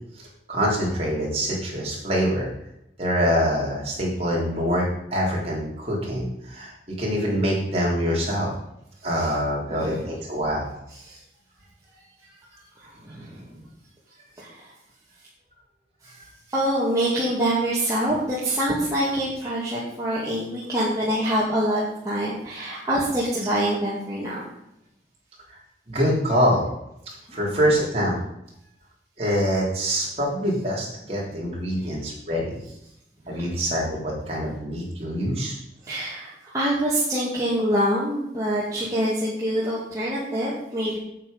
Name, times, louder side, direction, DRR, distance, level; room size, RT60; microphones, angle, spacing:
voice 1, 0.2-2.5 3.0-8.5 9.0-10.7 25.5-25.6 25.9-26.6 27.3-28.2 29.2-32.6 33.3-35.6, equal, 35° right, -4 dB, 3.6 m, -25 dB
voice 2, 9.6-10.1 11.0-11.2 12.8-13.4 14.4-14.7 16.5-24.4 27.3-27.4 31.8-31.9 33.3-33.5 35.8-41.0, right 1 dB, 20° right, -8 dB, 2.2 m, -25 dB
8.5 x 8.5 x 5.3 m, 0.80 s
head